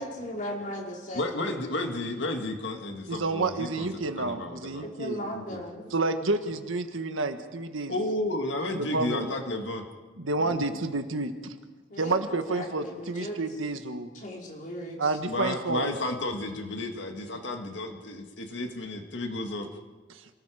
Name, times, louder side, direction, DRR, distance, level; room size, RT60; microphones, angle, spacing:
voice 1, 0.0-1.6 4.8-5.9 11.9-13.4 14.1-15.2, equal, 40° left, -2 dB, 4.9 m, -37 dB
voice 2, 1.1-4.8 5.3-5.6 7.9-9.8 10.4-10.8 15.2-19.7, left 2 dB, 60° left, 3 dB, 2.0 m, -32 dB
voice 3, 3.1-5.2 5.9-7.9 8.8-9.3 10.2-11.5 12.0-14.1 15.0-15.9, right 3 dB, 85° right, 7 dB, 1.6 m, -29 dB
28.0 x 18.5 x 5.1 m, 1.3 s
head